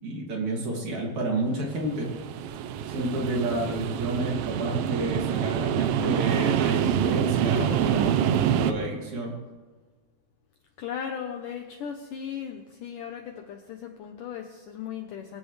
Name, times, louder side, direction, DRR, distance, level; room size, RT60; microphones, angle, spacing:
voice 1, 0.0-2.1 2.9-9.4, right 1 dB, 50° right, -1 dB, 3.4 m, -30 dB
sound 1, 1.7-8.7, right 9 dB, 80° right, 2.1 m, -26 dB
voice 2, 10.8-15.4, left 8 dB, 75° left, 4 dB, 2.0 m, -37 dB
23.0 x 15.5 x 3.3 m, 1.4 s
omnidirectional pair, 4.8 m